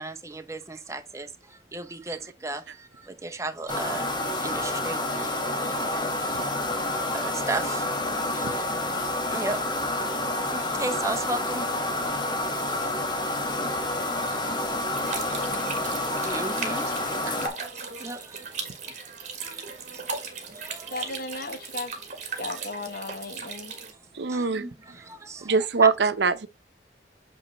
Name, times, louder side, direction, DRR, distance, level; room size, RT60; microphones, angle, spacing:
voice 1, 0.0-4.1 4.4-6.6 6.9-8.7 9.3-11.8 14.6-18.9 19.4-20.1 20.5-21.1 22.3-22.6 23.9-25.9, right 2 dB, 15° right, 0.7 m, -37 dB
sound 1, 3.7-17.5, left 1 dB, 25° left, 1.4 m, -28 dB
voice 2, 14.2-14.7 15.0-15.9 20.9-21.9 22.4-23.7, left 3 dB, 50° left, 0.9 m, -37 dB
sound 2, 15.0-23.9, right 5 dB, 40° right, 1.7 m, -37 dB
voice 3, 24.2-24.6 25.4-26.5, right 4 dB, 75° right, 0.7 m, -22 dB
8.3 x 3.2 x 4.1 m
head